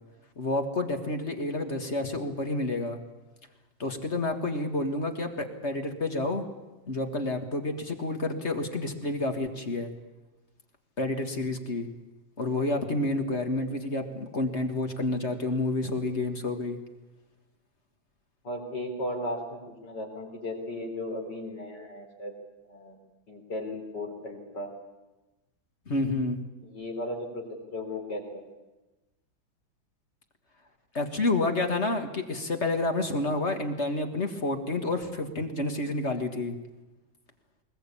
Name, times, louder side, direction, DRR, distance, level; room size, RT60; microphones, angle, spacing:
voice 1, 0.4-3.0 3.8-6.5 6.9-9.9 11.0-11.9 12.4-16.8 25.9-26.4 30.9-36.6, left 2 dB, 35° left, 5 dB, 1.9 m, -29 dB
voice 2, 18.4-22.3 22.7-23.0 23.3-24.7 26.6-28.4, left 1 dB, 60° left, 2 dB, 4.5 m, -36 dB
21.0 x 20.5 x 8.6 m, 1.1 s
omnidirectional pair, 2.1 m